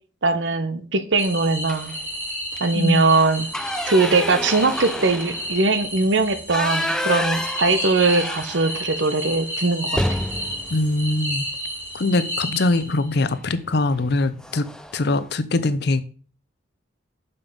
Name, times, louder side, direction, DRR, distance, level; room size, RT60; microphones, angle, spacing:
voice 1, 0.2-1.9 2.6-3.5 3.9-10.2, right 3 dB, 65° right, 0.9 m, -20 dB
sound 1, 1.2-13.1, equal, 10° right, 2.7 m, -32 dB
sound 2, 1.6-2.1 2.5-2.6 3.0-9.0 9.3-9.4 9.8-12.0 13.3-13.6 14.0-14.1 14.4-15.0, left 1 dB, 5° left, 0.4 m, -29 dB
voice 2, 2.7-3.1 10.7-11.5 11.9-14.7 14.9-16.0, left 2 dB, 60° left, 0.7 m, -22 dB
7.0 x 5.4 x 5.4 m
head